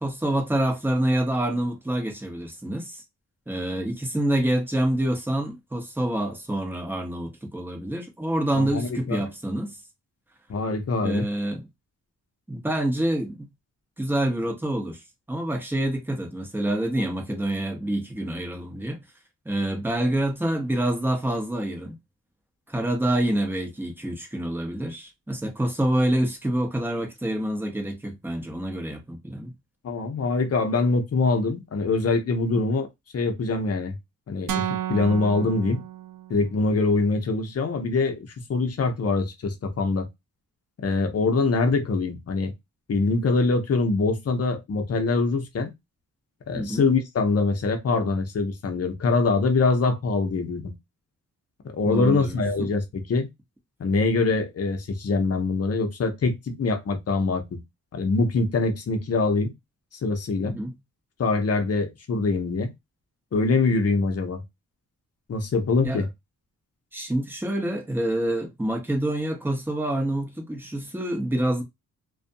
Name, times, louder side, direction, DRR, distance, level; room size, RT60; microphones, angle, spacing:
voice 1, 0.0-3.0 3.5-9.8 11.0-11.7 12.5-13.5 14.0-15.0 15.3-19.0 19.5-22.0 22.7-29.6 46.5-46.9 51.8-52.7 60.5-60.8 65.8-66.1 66.9-71.6, right 1 dB, 5° right, 0.8 m, -27 dB
voice 2, 8.5-9.2 10.5-11.3 29.8-32.9 33.1-34.0 34.3-35.8 36.3-40.1 40.8-42.5 42.9-45.7 46.5-50.7 51.8-53.3 53.8-57.6 57.9-59.5 60.0-60.6 61.2-62.7 63.3-64.4 65.3-66.1, left 3 dB, 45° left, 0.7 m, -24 dB
sound 1, 34.5-36.6, right 11 dB, 70° right, 0.5 m, -32 dB
2.5 x 2.3 x 2.5 m
cardioid pair, 90°, 34 cm